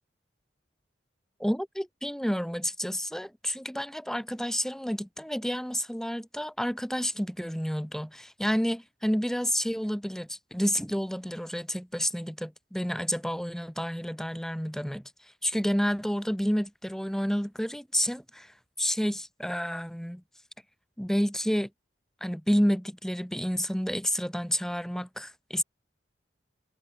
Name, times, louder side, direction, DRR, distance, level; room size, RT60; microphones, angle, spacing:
voice 1, 1.4-20.2 21.0-21.7 22.2-25.6, equal, 5° left, 2.1 m, -30 dB
head